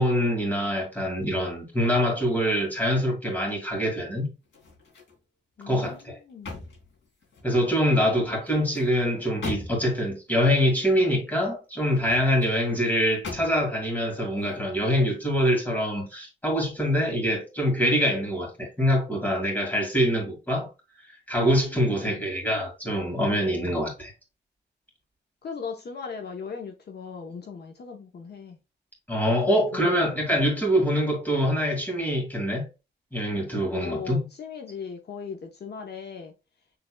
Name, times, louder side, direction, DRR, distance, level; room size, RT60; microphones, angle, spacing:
voice 1, 0.0-4.3 5.7-6.2 7.4-20.7 21.3-24.1 29.1-32.6 33.1-34.3, equal, 10° left, 2.2 m, -24 dB
sound 1, 4.4-5.2 5.6-7.6 8.3-10.1 11.8-12.6 13.2-13.8 14.3-14.5, left 3 dB, 85° left, 2.6 m, -41 dB
voice 2, 5.6-6.6 7.9-8.3 21.7-22.2 25.4-28.6 29.5-30.0 33.7-36.3, left 6 dB, 60° left, 0.9 m, -38 dB
6.8 x 3.4 x 2.3 m
wide cardioid pair, 135°, 19 cm